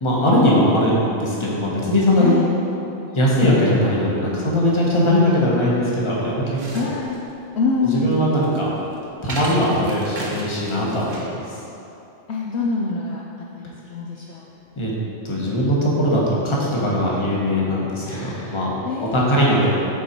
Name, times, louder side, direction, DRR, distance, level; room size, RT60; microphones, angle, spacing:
voice 1, 0.0-2.4 3.1-6.8 7.8-8.7 9.2-11.6 14.8-14.9 15.2-18.7 19.1-19.7, left 1 dB, 25° left, -5 dB, 1.1 m, -20 dB
sound 1, 6.2-11.4, right 1 dB, 40° right, 0.9 m, -36 dB
voice 2, 6.7-7.3 7.5-8.3 12.3-14.5 17.1-17.3 18.0-19.7, left 3 dB, 65° left, -3 dB, 0.8 m, -26 dB
7.4 x 4.0 x 4.3 m, 2.9 s
omnidirectional pair, 1.3 m